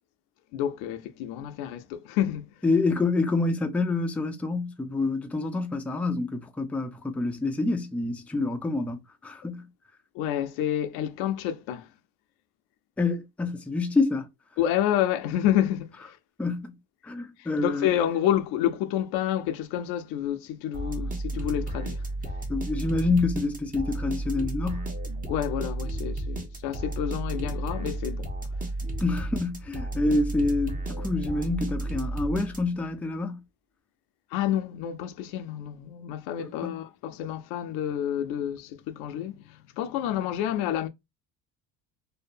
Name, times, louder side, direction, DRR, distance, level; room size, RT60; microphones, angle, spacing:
voice 1, 0.5-2.6 10.1-11.9 14.6-16.2 17.4-22.0 25.3-28.3 34.3-40.9, left 11 dB, 75° left, 0.5 m, -29 dB
voice 2, 2.6-9.7 13.0-14.3 16.4-16.8 17.0-17.9 22.5-24.9 29.0-33.4 36.4-36.8, left 3 dB, 5° left, 0.4 m, -27 dB
sound 1, 20.7-32.9, right 2 dB, 20° right, 0.8 m, -32 dB
2.7 x 2.1 x 2.4 m
supercardioid pair, 85°, 38 cm